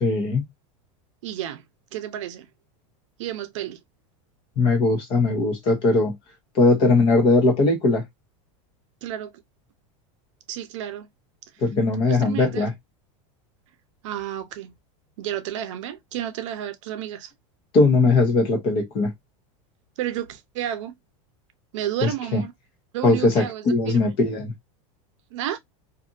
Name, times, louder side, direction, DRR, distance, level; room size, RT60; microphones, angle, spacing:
voice 1, 0.0-0.4 4.6-6.1 6.5-8.0 11.6-12.7 17.7-19.1 22.0-22.4 23.0-24.5, left 3 dB, 30° left, 0.9 m, -20 dB
voice 2, 1.2-1.6 1.9-2.5 3.2-3.8 9.0-9.3 10.5-11.1 12.0-12.7 14.0-14.7 15.2-17.3 20.0-21.0 21.7-22.5 22.9-24.1 25.3-25.6, right 11 dB, 65° right, 0.7 m, -31 dB
2.6 x 2.5 x 2.5 m
supercardioid pair, 175°, 17 cm